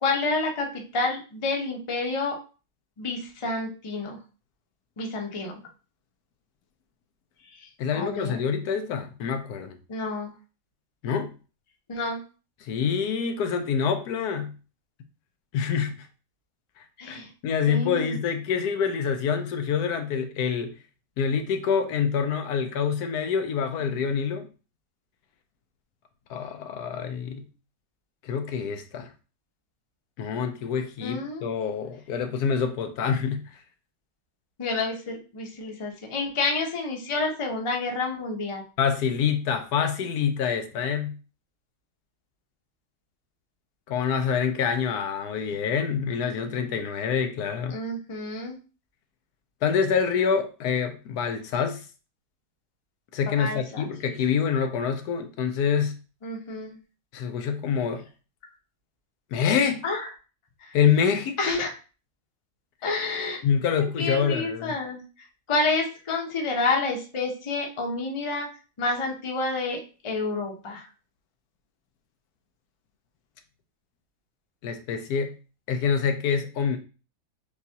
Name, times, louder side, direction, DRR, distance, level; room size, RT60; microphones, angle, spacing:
voice 1, 0.0-2.4 3.0-4.2 5.0-5.6 7.5-8.4 9.9-10.3 11.9-12.2 17.0-17.3 17.7-18.2 31.0-31.5 34.6-38.6 47.7-48.6 53.2-53.9 56.2-56.7 59.8-60.1 60.6-60.8 61.4-61.7 62.8-63.4 63.8-68.5 68.8-70.9, left 3 dB, 30° left, 0.6 m, -29 dB
voice 2, 7.8-9.8 11.0-11.3 12.6-14.5 15.5-16.1 17.1-20.7 21.2-24.5 26.3-27.4 28.2-29.1 30.2-33.4 38.8-41.2 43.9-47.8 49.6-51.8 53.1-56.0 57.1-58.0 59.3-59.8 60.7-61.6 63.4-64.8 74.6-75.3 75.7-76.8, left 7 dB, 80° left, 1.2 m, -26 dB
6.7 x 2.3 x 2.8 m
omnidirectional pair, 1.7 m